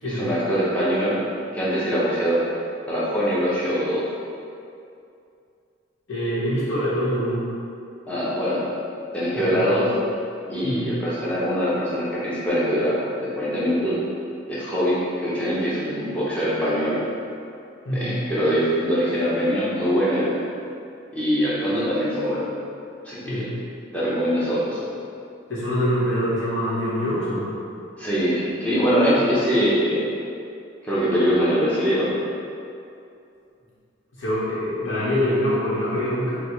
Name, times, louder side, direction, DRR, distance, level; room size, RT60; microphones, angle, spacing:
voice 1, 0.0-1.1 1.5-2.4 2.9-4.0 8.1-8.6 9.1-9.9 10.5-14.0 14.5-17.0 17.9-20.3 21.1-22.4 23.0-23.5 23.9-24.8 28.0-30.1 30.8-32.1, equal, 5° left, -10 dB, 0.9 m, -23 dB
voice 2, 6.1-7.4 9.3-9.8 10.6-10.9 17.8-18.1 23.3-23.5 25.5-27.5 34.1-36.4, equal, 85° left, -9 dB, 1.2 m, -25 dB
5.7 x 2.4 x 3.1 m, 2.5 s
head